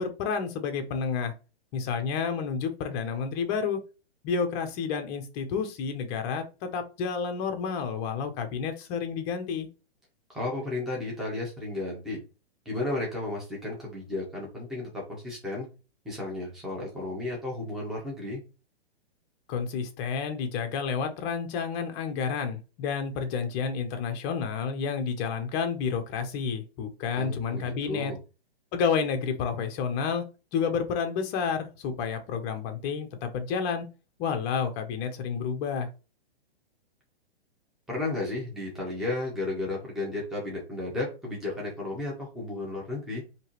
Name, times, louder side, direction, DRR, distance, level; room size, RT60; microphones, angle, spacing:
voice 1, 0.0-1.3 1.7-3.8 4.2-9.7 19.5-28.1 28.7-30.2 30.5-33.8 34.2-35.9, left 6 dB, 25° left, 6 dB, 0.8 m, -30 dB
voice 2, 10.3-12.2 12.6-15.7 16.0-18.4 27.1-28.2 37.9-43.2, left 2 dB, ahead, -4 dB, 1.3 m, -33 dB
4.6 x 2.9 x 3.1 m, 0.32 s
hypercardioid pair, 145°, 32 cm